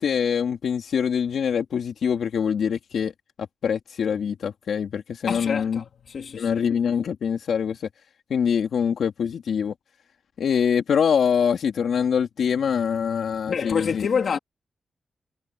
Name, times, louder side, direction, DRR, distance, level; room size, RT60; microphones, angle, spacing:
voice 1, 0.0-3.1 3.6-5.8 6.4-7.8 8.3-9.7 10.4-14.1, left 7 dB, 85° left, 2.9 m, -24 dB
voice 2, 5.3-6.6 13.5-14.4, left 6 dB, 65° left, 3.4 m, -27 dB
wide cardioid pair, 130°, 0 cm